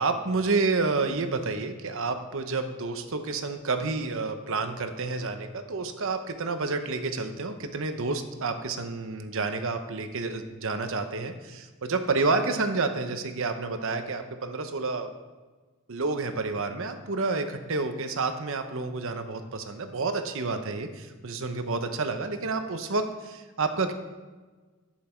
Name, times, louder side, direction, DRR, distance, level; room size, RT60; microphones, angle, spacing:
voice 1, 0.0-15.1 15.9-23.9, right 3 dB, 65° right, 7 dB, 0.9 m, -29 dB
11.5 x 9.3 x 4.5 m, 1.3 s
head